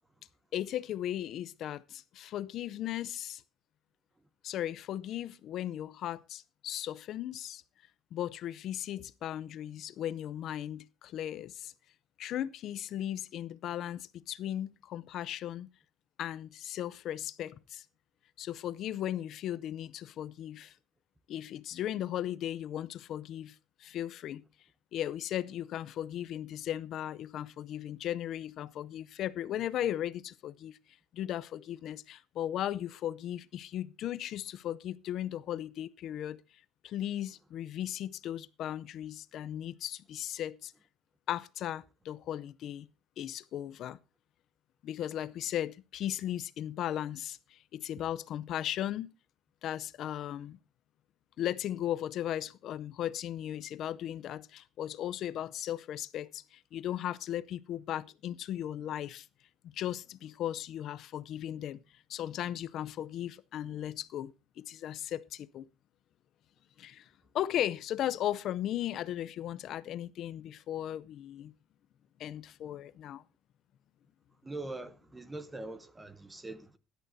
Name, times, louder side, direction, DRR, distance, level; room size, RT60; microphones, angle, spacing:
voice 1, 0.5-3.4 4.4-7.6 8.1-11.7 12.2-15.7 16.2-17.8 18.4-20.7 21.3-24.4 24.9-30.8 31.1-36.4 36.8-40.7 41.3-42.9 43.2-44.0 44.8-49.1 49.6-50.6 51.4-59.3 59.7-61.8 62.1-65.6 66.8-67.1 67.3-71.5 72.2-73.2, left 11 dB, 45° left, 0.5 m, -37 dB
voice 2, 74.4-76.8, right 2 dB, 10° right, 0.7 m, -42 dB
17.0 x 11.5 x 2.7 m
cardioid pair, 175°, 0 cm